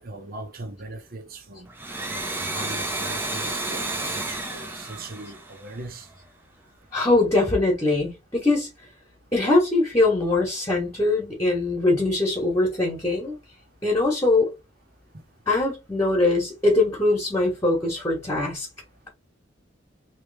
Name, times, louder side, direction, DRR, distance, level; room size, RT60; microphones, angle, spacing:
voice 1, 0.0-1.7 2.1-6.1, right 2 dB, 50° right, 0.9 m, -40 dB
Domestic sounds home sounds, 1.7-6.2, right 2 dB, 10° right, 0.6 m, -31 dB
voice 2, 6.9-8.7 9.3-13.3 13.8-14.5 15.5-18.7, left 2 dB, 15° left, 1.3 m, -22 dB
3.2 x 2.9 x 3.4 m
head